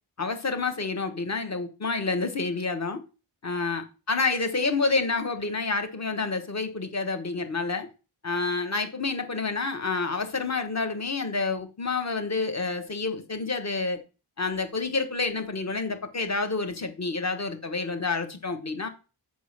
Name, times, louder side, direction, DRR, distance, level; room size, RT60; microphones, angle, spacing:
voice 1, 0.2-3.0 3.4-7.9 8.2-14.0 14.4-18.9, left 3 dB, 35° left, 1.2 m, -28 dB
8.2 x 3.8 x 6.4 m
wide cardioid pair, 135°, 44 cm